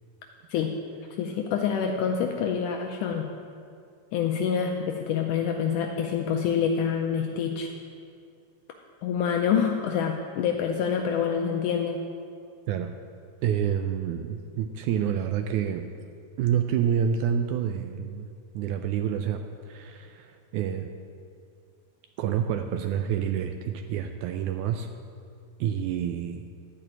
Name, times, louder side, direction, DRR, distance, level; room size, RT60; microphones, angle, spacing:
voice 1, 1.2-3.3 4.1-7.7 9.0-12.0, left 7 dB, 80° left, 2 dB, 2.0 m, -26 dB
voice 2, 13.4-15.9 16.4-20.9 22.2-24.9 25.6-26.5, right 8 dB, 85° right, 6 dB, 1.7 m, -28 dB
12.5 x 5.0 x 8.7 m, 2.4 s
omnidirectional pair, 3.9 m